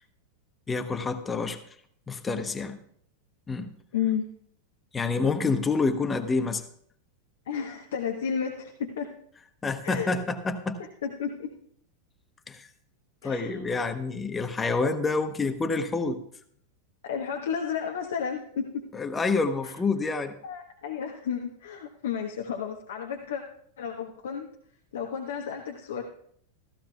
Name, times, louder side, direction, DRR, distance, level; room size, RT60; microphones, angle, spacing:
voice 1, 0.7-1.6 2.1-2.8 3.5-3.7 4.9-6.7 9.6-10.8 12.5-12.7 13.2-16.2 18.9-20.3, left 4 dB, 15° left, 8 dB, 1.0 m, -28 dB
voice 2, 3.9-4.2 7.4-9.1 9.8-10.2 10.8-11.5 13.2-13.6 17.0-18.8 19.6-19.7 20.4-23.4 23.8-24.5 24.9-26.0, left 7 dB, 60° left, 1 dB, 1.1 m, -32 dB
15.5 x 14.5 x 2.3 m, 0.65 s
figure-of-eight pair, 90°, 0 cm